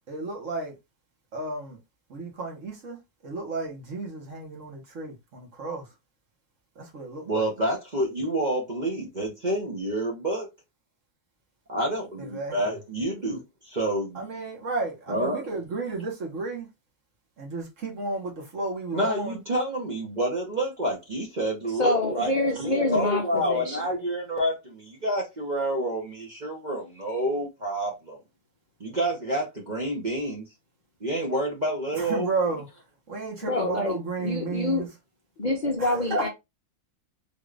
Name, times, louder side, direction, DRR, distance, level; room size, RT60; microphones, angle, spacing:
voice 1, 0.1-0.8 1.3-1.8 2.1-3.0 3.2-5.9 6.7-7.5 12.2-12.8 13.2-13.4 14.1-16.7 17.4-19.4 31.9-32.7 33.1-34.9 35.8-36.3, right 3 dB, 55° right, 1.5 m, -33 dB
voice 2, 7.3-10.5 11.7-14.2 15.1-15.5 18.9-22.3 22.6-28.2 28.8-30.4 31.0-32.3, right 1 dB, 35° right, 0.8 m, -28 dB
voice 3, 21.7-23.9 33.4-34.8 35.4-36.3, left 2 dB, 45° left, 0.6 m, -26 dB
3.8 x 2.5 x 3.2 m
omnidirectional pair, 1.6 m